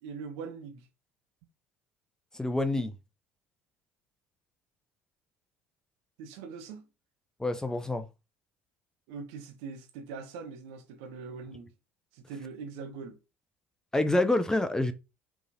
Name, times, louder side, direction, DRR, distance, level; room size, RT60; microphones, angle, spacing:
voice 1, 0.0-0.9 6.2-6.8 9.1-11.7 12.1-13.2, right 5 dB, 65° right, 0.9 m, -42 dB
voice 2, 2.3-2.9 7.4-8.1 13.9-14.9, left 2 dB, 10° left, 0.5 m, -27 dB
4.7 x 3.1 x 2.6 m
hypercardioid pair, 60°, 6 cm